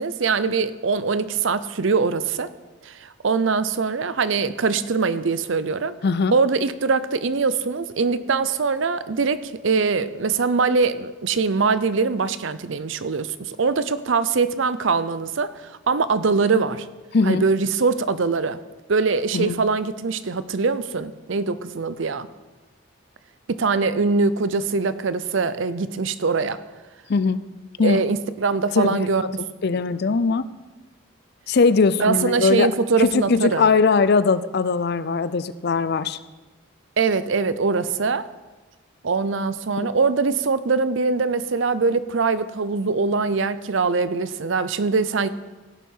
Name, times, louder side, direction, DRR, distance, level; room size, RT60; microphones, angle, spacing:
voice 1, 0.0-2.5 2.8-5.9 6.3-16.9 17.2-18.6 18.9-22.3 23.5-26.6 27.8-29.4 29.7-29.8 32.0-33.7 37.0-38.3 39.0-45.3, right 4 dB, 65° right, 14 dB, 0.6 m, -22 dB
voice 2, 6.0-6.3 17.1-17.4 19.3-19.6 27.1-27.4 27.8-28.0 28.7-29.0 29.6-30.5 31.5-32.7 33.0-36.2 39.8-39.9, left 4 dB, 50° left, 15 dB, 0.5 m, -20 dB
16.5 x 7.2 x 5.6 m, 1.2 s
head